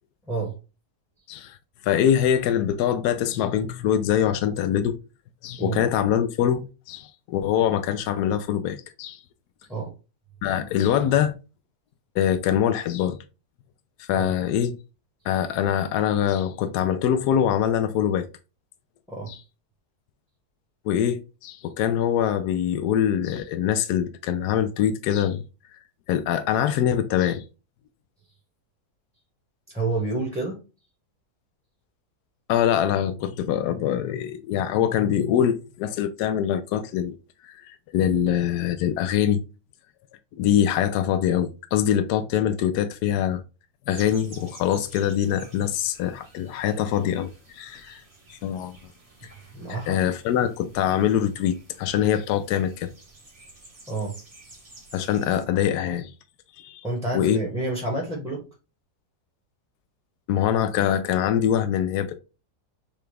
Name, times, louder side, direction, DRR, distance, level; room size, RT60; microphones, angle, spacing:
voice 1, 1.8-5.0 5.4-9.2 10.4-11.3 12.2-13.2 14.0-14.8 15.2-18.3 19.3-19.4 20.8-25.4 26.1-27.4 32.5-37.1 37.4-39.4 40.4-43.4 43.9-48.0 48.3-48.8 49.9-52.9 54.9-56.1 56.6-56.8 57.1-57.4 60.3-62.2, left 10 dB, 80° left, 1.1 m, -24 dB
voice 2, 29.7-30.6 49.5-50.0 53.9-54.2 56.8-58.5, right 3 dB, ahead, 1.0 m, -29 dB
sound 1, 43.9-55.4, right 2 dB, 25° right, 1.1 m, -50 dB
6.9 x 2.3 x 3.3 m
omnidirectional pair, 1.7 m